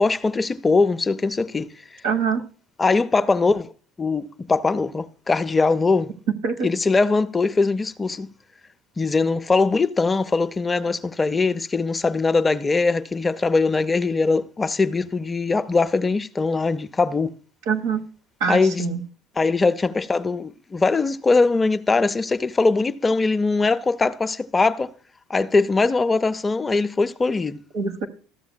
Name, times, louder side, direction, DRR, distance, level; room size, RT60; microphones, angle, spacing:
voice 1, 0.0-1.7 2.8-3.7 4.0-6.1 6.6-8.3 9.0-17.3 18.5-18.9 19.4-24.9 25.3-27.6, left 3 dB, 20° left, 0.5 m, -21 dB
voice 2, 2.0-2.4 6.4-6.7 17.7-18.0 18.4-19.0 27.7-28.1, right 5 dB, 70° right, 1.2 m, -24 dB
13.5 x 7.0 x 2.2 m
supercardioid pair, 85°, 0 cm